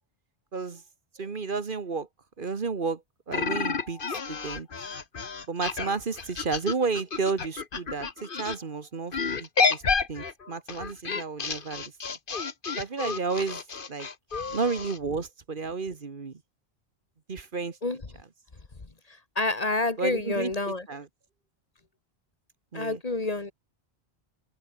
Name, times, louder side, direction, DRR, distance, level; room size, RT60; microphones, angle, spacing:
voice 1, 0.5-0.8 1.1-2.1 2.4-4.0 4.3-4.7 5.5-9.8 10.1-12.2 12.8-13.6 13.9-14.1 14.5-16.4 17.3-17.8 20.0-21.1 22.7-23.0, right 4 dB, 55° right, 1.5 m, -32 dB
sound 1, 3.3-8.6 9.1-15.0, left 5 dB, 55° left, 1.5 m, -30 dB
voice 2, 19.3-20.8 22.7-23.5, left 2 dB, 35° left, 1.7 m, -28 dB
open air
omnidirectional pair, 1.1 m